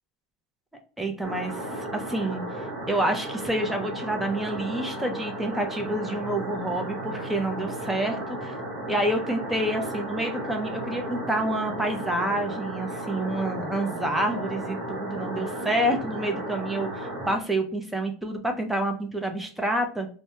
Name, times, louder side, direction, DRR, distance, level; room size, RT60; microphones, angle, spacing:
voice 1, 1.0-2.4 2.9-8.5 8.9-20.1, right 1 dB, 5° right, 4 dB, 0.5 m, -28 dB
sound 1, 1.2-17.4, right 1 dB, 40° right, 1.0 m, -34 dB
2.2 x 2.1 x 2.9 m, 0.42 s
supercardioid pair, 135°, 2 cm